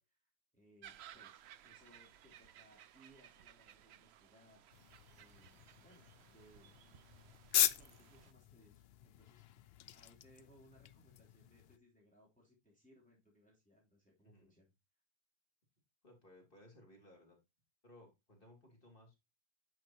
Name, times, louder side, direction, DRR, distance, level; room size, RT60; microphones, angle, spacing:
voice 1, 0.0-4.6 5.1-6.7 7.6-9.4 9.9-14.7, equal, 5° left, -2 dB, 3.4 m, -67 dB
sound 1, 0.8-8.3, right 11 dB, 65° right, 0.6 m, -59 dB
sound 2, 4.7-11.8, left 11 dB, 70° left, 0.5 m, -40 dB
voice 2, 14.2-14.6 16.0-17.4 17.8-19.1, left 1 dB, 35° left, 0 dB, 3.7 m, -61 dB
9.7 x 6.6 x 2.9 m, 0.22 s
omnidirectional pair, 1.6 m